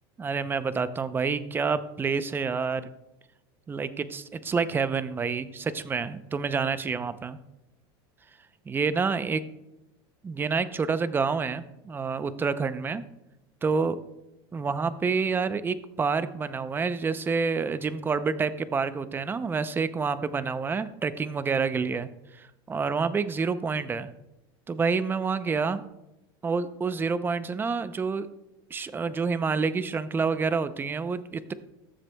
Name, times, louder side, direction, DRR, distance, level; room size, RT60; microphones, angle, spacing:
voice 1, 0.2-2.8 3.7-7.4 8.7-9.4 10.2-13.0 13.6-14.0 14.5-22.1 22.4-24.1 24.7-25.8 26.4-28.3 28.7-31.5, right 5 dB, 15° right, 13 dB, 0.6 m, -28 dB
20.0 x 7.5 x 2.3 m, 0.94 s
supercardioid pair, 130°, 13 cm